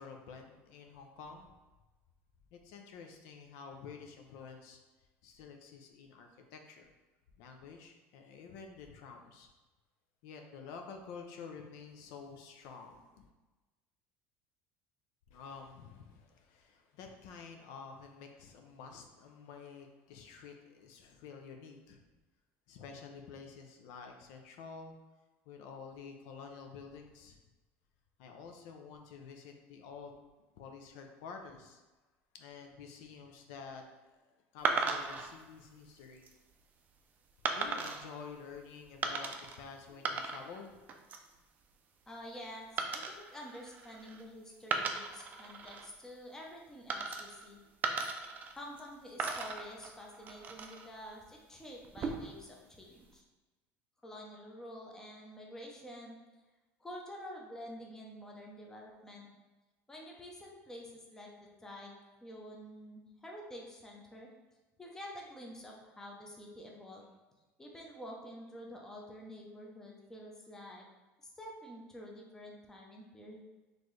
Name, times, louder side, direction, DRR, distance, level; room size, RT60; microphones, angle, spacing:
voice 1, 0.0-1.6 2.5-4.8 5.2-6.9 7.4-9.5 10.2-13.3 15.3-22.0 22.7-24.9 25.5-27.4 28.2-30.1 30.6-31.8 32.3-34.3 34.5-36.2 37.4-40.8, left 5 dB, 70° left, 4 dB, 0.5 m, -50 dB
sound 1, 34.7-35.3 36.0-36.3 37.5-38.1 39.0-39.6 39.9-40.6 40.9-41.3 42.8-44.2 44.6-45.9 46.9-47.5 47.8-48.9 49.2-50.9 51.8-52.4, right 4 dB, 30° right, 0.4 m, -37 dB
voice 2, 42.1-47.6 48.6-53.2 54.0-56.2 56.8-59.3 59.9-61.9 62.2-64.3 64.8-67.1 67.6-70.8 71.2-73.4, equal, 10° left, -1 dB, 0.6 m, -48 dB
4.2 x 3.1 x 3.1 m, 1.2 s
cardioid pair, 150°, 5 cm